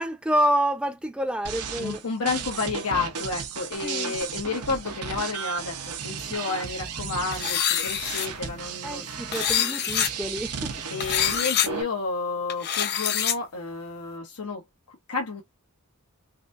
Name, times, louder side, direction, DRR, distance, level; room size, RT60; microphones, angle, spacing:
voice 1, 0.0-2.3 3.8-4.2 8.8-10.7, equal, 5° right, 0.5 m, -28 dB
sound 1, 1.4-11.8, right 6 dB, 85° right, 0.8 m, -34 dB
voice 2, 1.8-9.1 10.9-14.6 14.9-15.4, left 4 dB, 85° left, 0.9 m, -31 dB
sound 2, 7.3-8.3 9.3-10.1 11.0-11.7 12.5-13.3, left 9 dB, 50° left, 0.6 m, -25 dB
4.0 x 2.6 x 2.5 m
head